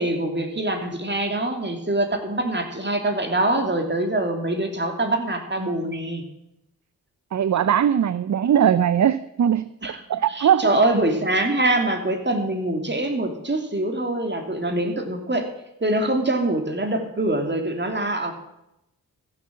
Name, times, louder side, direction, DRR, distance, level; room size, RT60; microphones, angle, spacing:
voice 1, 0.0-6.2 9.8-10.0 10.3-15.5 15.8-18.3, right 1 dB, 30° right, 4 dB, 2.9 m, -24 dB
voice 2, 7.3-10.8, right 9 dB, 50° right, 15 dB, 0.6 m, -20 dB
15.0 x 7.3 x 7.6 m, 0.86 s
cardioid pair, 45°, 37 cm